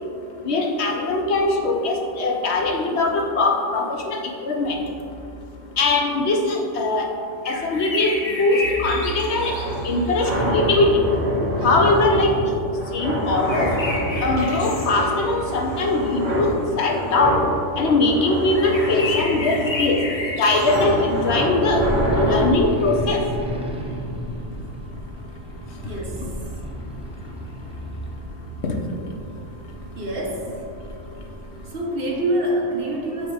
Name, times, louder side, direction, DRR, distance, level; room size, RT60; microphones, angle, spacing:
voice 1, 0.4-4.2 4.4-4.8 5.8-7.1 7.5-8.1 8.4-9.5 9.8-11.0 11.6-12.3 12.9-13.7 14.2-16.5 16.8-17.4 17.8-20.0 20.4-21.8 22.2-23.2, left 2 dB, 65° left, 2 dB, 0.9 m, -21 dB
sound 1, 7.4-10.1 13.5-15.4 15.8-15.9 18.5-21.2, left 2 dB, 35° left, 0.8 m, -31 dB
sound 2, 9.4-22.4, equal, 80° right, 2.0 m, -26 dB
sound 3, 21.8-31.7, equal, 10° right, 0.4 m, -33 dB
voice 2, 25.8-26.3 30.0-30.7 31.7-33.3, right 1 dB, 55° right, -1 dB, 1.0 m, -26 dB
8.3 x 3.0 x 4.6 m, 2.5 s
omnidirectional pair, 1.3 m